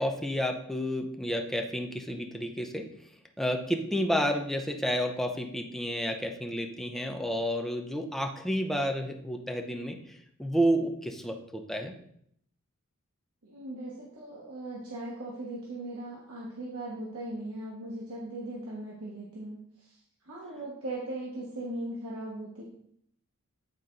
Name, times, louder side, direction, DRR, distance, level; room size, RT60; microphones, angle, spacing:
voice 1, 0.0-2.8 3.4-11.9, equal, ahead, 3 dB, 0.7 m, -30 dB
voice 2, 13.4-20.0 20.2-22.6, right 1 dB, 75° right, -5 dB, 1.4 m, -39 dB
9.3 x 4.2 x 3.9 m, 0.70 s
head